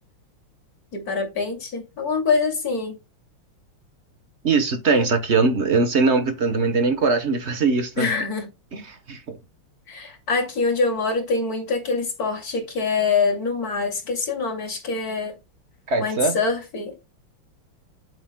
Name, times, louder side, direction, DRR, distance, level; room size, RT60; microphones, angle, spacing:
voice 1, 0.9-3.0 4.9-5.1 8.0-8.5 9.9-15.4 16.0-17.0, left 4 dB, 40° left, 2.9 m, -25 dB
voice 2, 4.4-8.1 8.7-9.4 15.9-16.4, right 4 dB, 45° right, 0.9 m, -21 dB
8.7 x 8.0 x 2.2 m
omnidirectional pair, 2.4 m